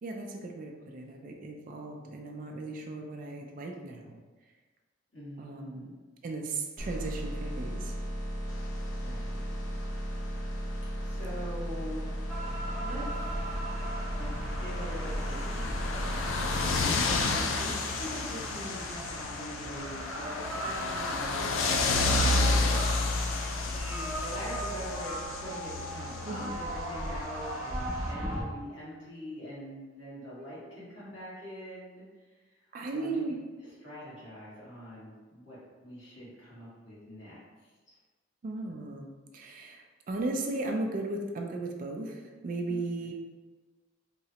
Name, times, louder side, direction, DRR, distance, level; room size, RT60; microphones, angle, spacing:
voice 1, 0.0-4.2 5.4-5.9 6.2-8.0 17.0-17.3 26.3-26.5 32.7-33.4 38.4-43.1, right 2 dB, 45° right, 2 dB, 0.3 m, -36 dB
voice 2, 5.1-5.9 9.0-9.5 11.0-12.4 12.8-13.3 14.2-16.4 16.8-17.7 18.0-22.8 23.5-32.0 32.5-32.6 32.9-33.3 33.8-38.0 42.7-42.8, equal, 65° left, -9 dB, 1.4 m, -43 dB
sound 1, 6.8-16.8, equal, 20° left, 0.7 m, -35 dB
sound 2, 8.9-9.1 10.3-10.4 10.6-10.7 11.1-11.2 11.4-11.6 12.2-28.1, left 3 dB, 85° left, 0.3 m, -31 dB
sound 3, 12.3-28.4, right 1 dB, 10° right, 0.8 m, -39 dB
3.7 x 2.1 x 2.8 m, 1.3 s
head